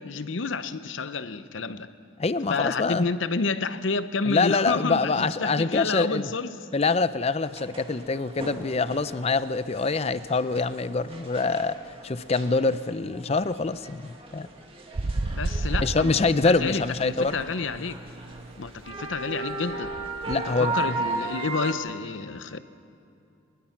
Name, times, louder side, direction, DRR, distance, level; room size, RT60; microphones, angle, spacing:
voice 1, 0.0-1.9 2.5-6.6 15.3-18.0 18.6-19.9 20.3-22.6, left 4 dB, 75° left, 0.8 m, -30 dB
voice 2, 2.2-3.0 4.3-6.3 6.7-11.8 12.0-14.5 15.8-17.4 20.3-21.0, left 3 dB, 30° left, 0.5 m, -25 dB
sound 1, 7.4-21.7, right 3 dB, 30° right, 2.0 m, -37 dB
sound 2, 14.9-16.8 17.1-20.3, right 2 dB, 65° right, 0.7 m, -32 dB
24.0 x 20.5 x 5.9 m
head